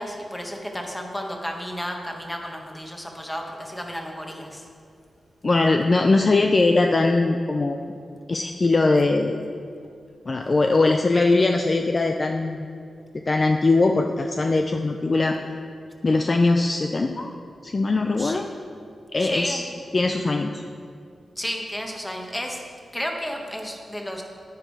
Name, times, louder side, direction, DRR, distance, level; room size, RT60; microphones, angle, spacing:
voice 1, 0.0-4.6 18.2-18.4 19.2-19.7 21.4-22.6 22.9-24.2, equal, 10° left, 2 dB, 1.3 m, -32 dB
voice 2, 5.4-7.8 8.3-9.4 10.3-12.7 13.3-15.4 16.0-17.3 17.6-18.5 19.1-19.6 19.9-20.6, left 3 dB, 35° left, 4 dB, 0.4 m, -21 dB
9.8 x 9.1 x 4.7 m, 2.4 s
wide cardioid pair, 110°, 0 cm